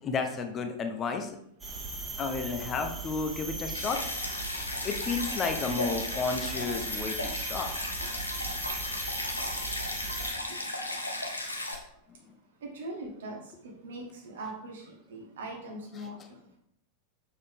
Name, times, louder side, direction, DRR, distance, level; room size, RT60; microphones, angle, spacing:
voice 1, 0.0-1.4 2.2-4.0 4.8-7.7 16.0-16.1, left 4 dB, 25° left, 5 dB, 0.9 m, -32 dB
sound 1, 1.6-10.3, right 3 dB, 10° right, 1.7 m, -38 dB
Stream, 3.7-11.7, left 1 dB, 85° left, 1.0 m, -35 dB
voice 2, 12.6-16.4, right 1 dB, 60° right, 0 dB, 1.9 m, -41 dB
6.8 x 6.5 x 3.6 m, 0.73 s
figure-of-eight pair, 90°, 0 cm